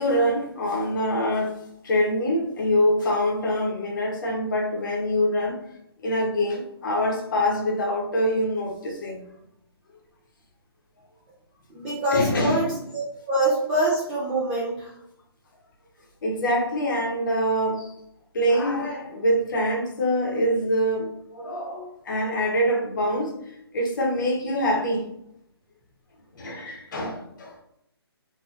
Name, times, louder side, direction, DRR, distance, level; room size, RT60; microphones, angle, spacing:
voice 1, 0.0-1.5 1.8-5.6 6.0-9.2 12.1-12.6 16.2-17.9 18.3-23.4 23.7-25.0 26.4-27.5, equal, 50° left, 0 dB, 0.9 m, -24 dB
voice 2, 11.7-14.9, right 1 dB, 10° right, -7 dB, 0.3 m, -25 dB
2.8 x 2.7 x 2.4 m, 0.77 s
hypercardioid pair, 160°, 14 cm